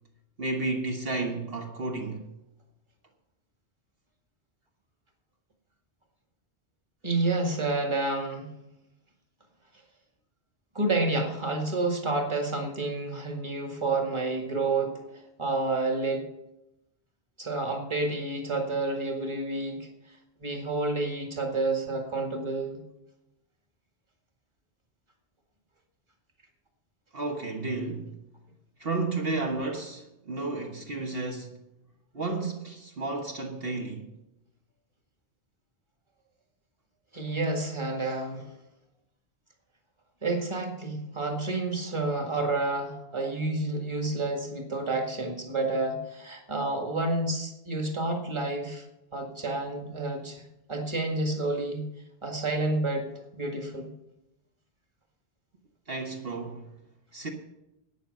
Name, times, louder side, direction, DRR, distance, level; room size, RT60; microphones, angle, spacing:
voice 1, 0.4-2.3 27.1-28.1 28.8-31.6 32.1-34.1 55.9-56.7 57.1-57.3, right 3 dB, 60° right, 1.6 m, -32 dB
voice 2, 7.0-8.5 10.7-16.3 17.4-19.9 20.4-22.8 37.1-38.5 40.2-48.8 49.1-50.4 50.7-51.8 52.2-53.9, right 2 dB, 25° right, 2.0 m, -29 dB
13.0 x 8.9 x 6.8 m
omnidirectional pair, 1.1 m